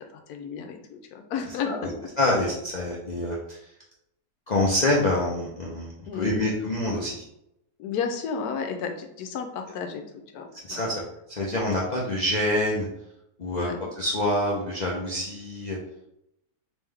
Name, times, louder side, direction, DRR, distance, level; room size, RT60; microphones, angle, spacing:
voice 1, 0.1-1.9 6.1-6.4 7.8-10.8 13.5-13.8, left 6 dB, 85° left, 5 dB, 1.2 m, -33 dB
voice 2, 1.5-1.9 2.2-3.6 4.5-7.3 10.7-12.9 13.4-13.7 14.0-15.8, left 1 dB, 65° left, -4 dB, 0.4 m, -26 dB
3.5 x 3.0 x 3.3 m, 0.82 s
omnidirectional pair, 1.6 m